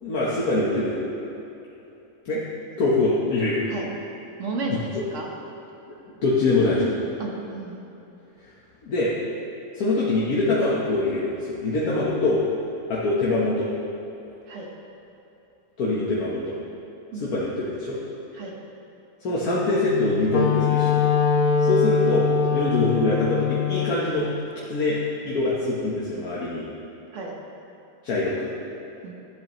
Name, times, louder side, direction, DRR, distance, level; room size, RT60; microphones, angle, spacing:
voice 1, 0.0-1.0 2.2-2.4 2.8-3.6 6.2-6.9 8.8-9.1 9.7-12.4 12.9-13.7 15.8-16.6 17.2-18.0 19.2-21.0 21.6-22.2 22.5-24.3 24.7-25.0 25.2-26.6 28.0-28.5, left 2 dB, 85° left, -7 dB, 1.6 m, -23 dB
voice 2, 4.4-5.3 7.2-7.8 14.5-14.7 17.1-17.3 18.3-18.5 21.7-21.8 27.1-27.4 29.0-29.1, right 2 dB, 60° right, -1 dB, 1.5 m, -33 dB
Wind instrument woodwind instrument, 19.8-24.0, left 6 dB, 60° left, 0.6 m, -22 dB
12.5 x 8.1 x 3.0 m, 3.0 s
omnidirectional pair, 1.5 m